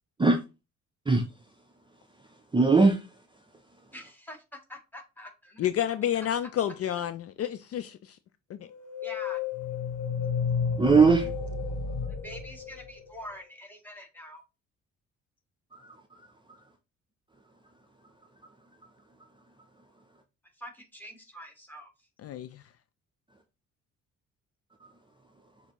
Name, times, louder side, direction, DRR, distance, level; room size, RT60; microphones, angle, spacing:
voice 1, 1.1-1.5 1.9-3.9 10.8-11.3 15.7-16.6 18.4-18.9 19.3-20.0 24.8-24.9, right 4 dB, 15° right, 0.6 m, -25 dB
voice 2, 3.9-5.7 9.0-9.4 12.1-14.4 20.6-21.9, equal, 5° left, 1.7 m, -45 dB
voice 3, 5.6-8.2 8.5-8.7 22.2-22.6, left 10 dB, 55° left, 0.4 m, -30 dB
sound 1, 8.7-13.3, left 6 dB, 90° left, 0.9 m, -32 dB
6.2 x 2.7 x 3.0 m
cardioid pair, 90°, 30 cm